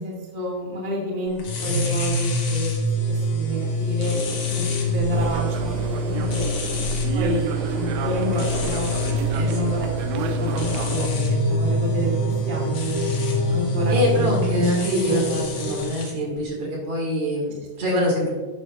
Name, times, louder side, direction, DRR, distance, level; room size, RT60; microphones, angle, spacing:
voice 1, 0.0-2.7 3.1-4.2 4.5-4.6 4.9-6.5 7.1-8.9 9.4-13.1 13.5-14.6 14.9-15.3 17.8-18.1, left 1 dB, 20° right, -3 dB, 1.3 m, -29 dB
sound 1, 1.4-16.1, equal, 55° left, 2.0 m, -26 dB
sound 2, 2.9-15.9, left 1 dB, 30° left, 1.6 m, -32 dB
sound 3, 5.1-11.1, right 6 dB, 80° right, 1.9 m, -31 dB
voice 2, 9.3-9.7 13.9-18.3, equal, 50° right, -1 dB, 2.8 m, -25 dB
11.0 x 9.5 x 2.5 m, 1.4 s
omnidirectional pair, 4.2 m